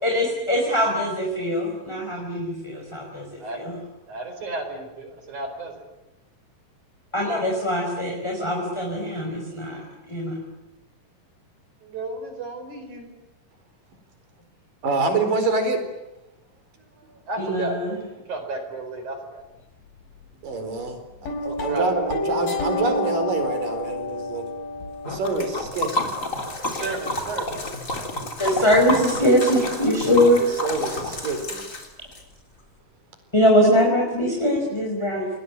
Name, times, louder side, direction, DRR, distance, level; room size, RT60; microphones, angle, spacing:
voice 1, 0.0-3.7 7.1-9.8 10.1-10.3 17.4-17.9 28.4-30.5 33.3-35.3, equal, 10° left, 0 dB, 4.8 m, -22 dB
voice 2, 4.1-5.7 11.8-13.2 17.1-18.0 18.3-19.4 21.5-22.1 26.7-27.6, right 2 dB, 60° right, 6 dB, 5.9 m, -33 dB
voice 3, 14.8-15.8 20.4-21.0 21.4-24.4 25.1-26.1 28.5-28.7 30.4-31.6, right 3 dB, 75° right, 7 dB, 6.0 m, -26 dB
sound 1, 21.2-25.7, left 2 dB, 85° left, 7.0 m, -29 dB
Liquid, 25.0-32.2, left 2 dB, 25° left, 3.5 m, -30 dB
29.0 x 20.5 x 9.7 m, 1.0 s
omnidirectional pair, 3.9 m